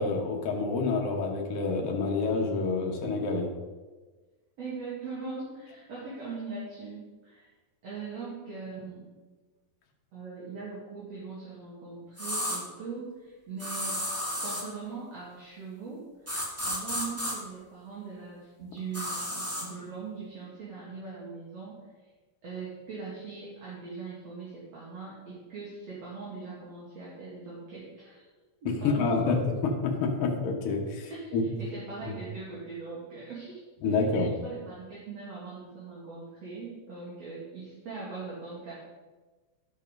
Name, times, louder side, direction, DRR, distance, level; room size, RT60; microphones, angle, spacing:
voice 1, 0.0-3.5 28.8-29.4 29.6-31.4 32.0-32.1 33.8-34.3, left 4 dB, 60° left, 1 dB, 1.6 m, -28 dB
voice 2, 4.6-7.5 7.8-9.1 10.1-14.0 14.4-16.1 16.6-21.8 22.4-28.2 28.6-29.4 31.1-33.6 34.2-38.7, right 4 dB, 50° right, -8 dB, 3.1 m, -41 dB
sound 1, 12.2-12.6 13.6-14.7 16.3-17.3 18.9-19.7, equal, 15° right, 0.5 m, -32 dB
12.5 x 5.6 x 5.2 m, 1.3 s
omnidirectional pair, 4.2 m